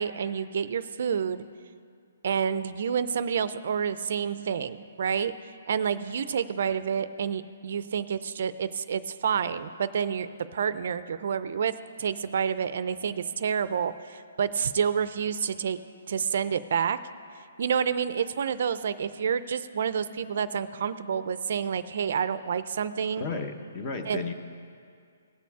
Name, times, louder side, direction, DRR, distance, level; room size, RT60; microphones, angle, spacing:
voice 1, 0.0-1.4 2.2-5.3 5.7-11.7 12.0-15.8 16.1-17.0 17.6-23.2 24.1-24.3, right 7 dB, 55° right, 14 dB, 0.4 m, -29 dB
voice 2, 23.2-24.3, left 4 dB, 25° left, 6 dB, 0.8 m, -33 dB
18.5 x 7.0 x 4.7 m, 2.3 s
hypercardioid pair, 170°, 0 cm